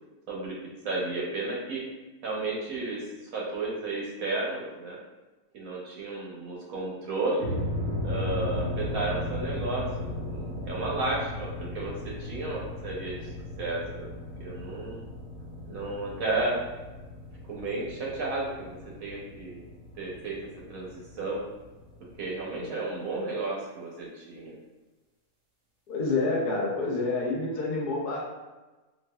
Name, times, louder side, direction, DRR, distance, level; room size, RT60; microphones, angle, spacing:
voice 1, 0.3-0.6 0.8-1.9 2.2-5.0 5.5-7.6 8.0-13.3 13.6-14.1 14.4-15.1 15.7-16.6 17.5-19.6 19.9-20.4 20.7-21.4 22.2-24.6, right 2 dB, 65° right, -3 dB, 1.1 m, -33 dB
sound 1, 7.4-22.6, left 1 dB, 40° right, 0.6 m, -36 dB
voice 2, 25.9-28.2, left 3 dB, 80° left, -3 dB, 1.2 m, -28 dB
4.1 x 2.4 x 2.2 m, 1.2 s
omnidirectional pair, 1.7 m